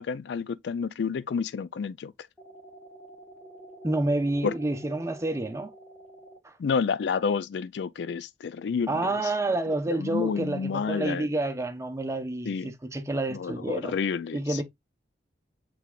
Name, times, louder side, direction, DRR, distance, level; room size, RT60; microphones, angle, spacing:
voice 1, 0.0-2.1 4.4-4.5 6.6-9.1 9.9-11.3 12.5-12.7 13.3-14.6, left 6 dB, 75° left, 0.4 m, -29 dB
sound 1, 2.4-6.4, right 1 dB, 5° left, 1.1 m, -48 dB
voice 2, 3.8-5.7 6.4-6.5 8.9-14.0 14.3-14.6, right 2 dB, 15° right, 0.7 m, -29 dB
6.6 x 3.4 x 2.3 m
head